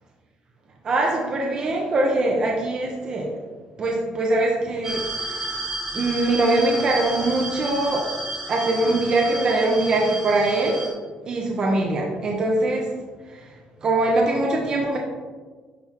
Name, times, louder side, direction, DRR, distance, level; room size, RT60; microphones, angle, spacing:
voice 1, 0.8-3.3 3.8-5.0 5.9-8.1 8.5-10.8 11.3-12.9 13.3-13.5 13.8-15.0, right 2 dB, 30° right, -1 dB, 0.7 m, -22 dB
sound 1, 4.8-10.9, right 1 dB, 10° right, 1.6 m, -32 dB
10.0 x 3.5 x 2.9 m, 1.4 s
cardioid pair, 175°, 3 cm